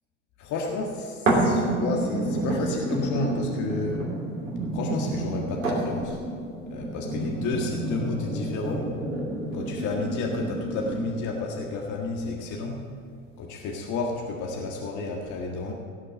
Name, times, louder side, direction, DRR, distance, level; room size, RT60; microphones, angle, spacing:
voice 1, 0.4-4.0 4.7-8.9 9.5-12.8 13.4-15.7, left 3 dB, 50° left, 0 dB, 1.8 m, -31 dB
sound 1, 1.3-11.2 11.8-11.9, right 2 dB, 90° right, 3.3 m, -29 dB
17.5 x 6.5 x 7.8 m, 2.2 s
hypercardioid pair, 80°, 37 cm